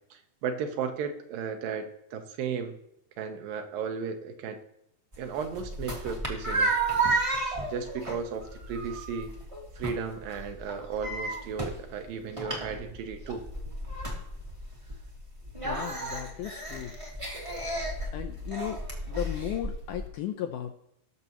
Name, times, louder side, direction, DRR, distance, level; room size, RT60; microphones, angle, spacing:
voice 1, 0.1-2.8 3.2-4.6 5.2-6.8 7.7-9.3 9.8-13.4, right 6 dB, 75° right, 6 dB, 2.6 m, -35 dB
sound 1, 5.1-20.1, right 2 dB, 25° right, 0.7 m, -33 dB
voice 2, 15.6-17.0 18.1-20.7, left 11 dB, 80° left, 5 dB, 1.9 m, -35 dB
19.5 x 6.8 x 3.0 m, 0.77 s
omnidirectional pair, 4.2 m